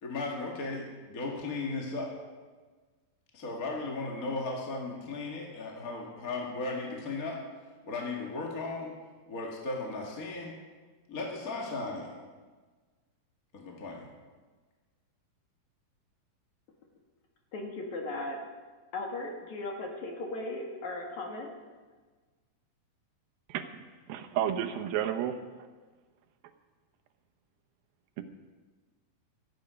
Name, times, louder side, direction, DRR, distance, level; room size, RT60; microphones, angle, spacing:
voice 1, 0.0-2.1 3.3-7.4 7.8-8.9 9.3-10.5 11.1-12.1 13.5-14.1, left 3 dB, 35° left, -1 dB, 1.7 m, -36 dB
voice 2, 17.5-18.4 18.9-21.5, left 2 dB, 55° left, 1 dB, 2.9 m, -37 dB
voice 3, 24.1-25.4 28.2-28.3, right 10 dB, 80° right, 7 dB, 2.7 m, -31 dB
16.0 x 13.5 x 5.2 m, 1.4 s
omnidirectional pair, 4.3 m